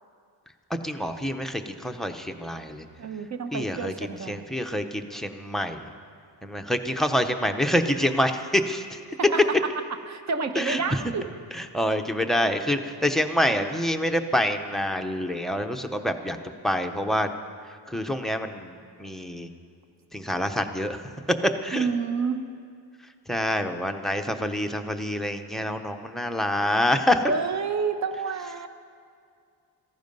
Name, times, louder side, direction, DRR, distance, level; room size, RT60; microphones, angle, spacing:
voice 1, 0.8-2.8 3.5-5.8 6.4-9.0 10.6-11.0 11.5-16.4 16.6-17.3 17.9-19.5 20.1-21.0 21.6-21.9 23.3-27.2, left 1 dB, ahead, 4 dB, 0.6 m, -27 dB
voice 2, 3.0-4.5 9.2-11.2 21.7-22.5 27.3-28.7, right 5 dB, 40° right, 8 dB, 0.9 m, -29 dB
17.0 x 15.0 x 5.3 m, 2.3 s
wide cardioid pair, 175°, 44 cm